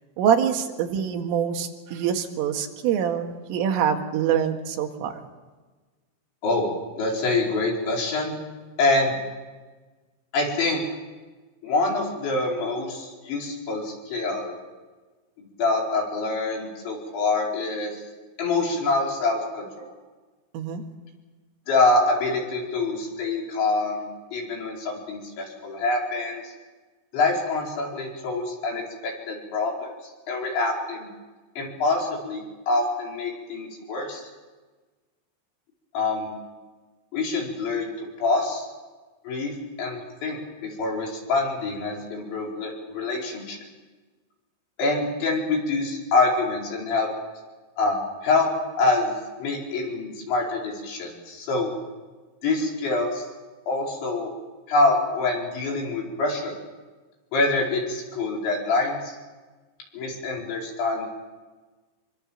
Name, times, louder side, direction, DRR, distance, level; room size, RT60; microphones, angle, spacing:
voice 1, 0.2-5.2 20.5-20.8, right 8 dB, 85° right, 4 dB, 4.4 m, -25 dB
voice 2, 7.0-8.4 8.8-9.1 10.3-10.8 11.6-14.5 15.6-18.0 18.4-19.9 21.7-26.5 27.1-29.9 30.3-31.1 31.6-34.2 35.9-36.3 37.1-37.9 38.2-38.7 39.3-43.6 44.8-47.1 47.8-48.5 48.8-51.7 52.4-53.3 53.7-54.3 54.7-56.5 57.3-59.2 59.9-61.1, left 3 dB, 65° left, -1 dB, 7.1 m, -25 dB
27.0 x 23.5 x 7.4 m, 1.3 s
omnidirectional pair, 5.6 m